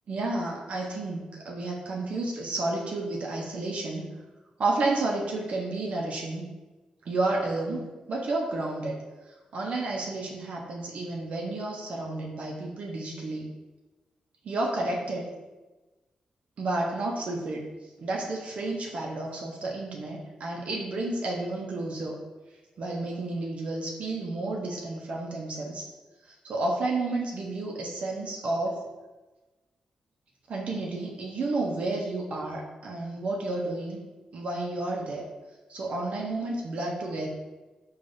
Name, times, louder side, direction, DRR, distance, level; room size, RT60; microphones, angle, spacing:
voice 1, 0.1-4.1 4.6-6.5 7.1-9.0 9.5-13.5 14.4-15.3 16.6-17.6 18.0-22.2 22.8-25.9 26.3-28.8 30.5-34.0 34.3-35.3 35.7-37.3, right 2 dB, 65° right, -1 dB, 0.6 m, -31 dB
4.8 x 2.3 x 2.6 m, 1.2 s
cardioid pair, 105°, 2 cm